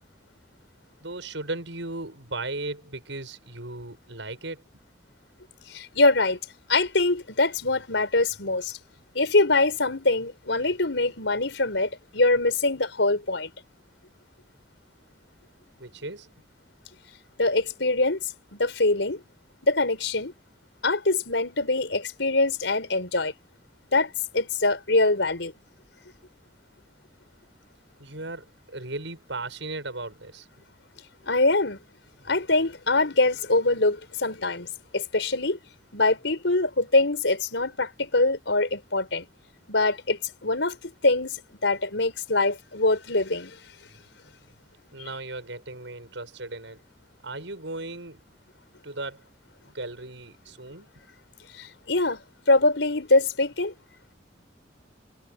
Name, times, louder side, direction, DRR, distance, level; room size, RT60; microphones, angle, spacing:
voice 1, 1.0-4.6 15.8-16.3 28.0-30.5 44.9-46.8 47.2-48.2 48.8-49.3 49.6-50.9, right 2 dB, 85° right, 7.7 m, -36 dB
voice 2, 5.7-6.4 6.7-8.8 9.1-13.5 17.4-18.2 18.5-19.2 19.6-20.3 20.8-23.3 23.9-25.5 31.3-31.8 32.2-34.7 34.9-35.6 35.9-39.2 39.7-41.4 41.6-43.6 45.0-45.1 51.6-52.2 52.5-53.7, left 2 dB, 85° left, 4.9 m, -23 dB
head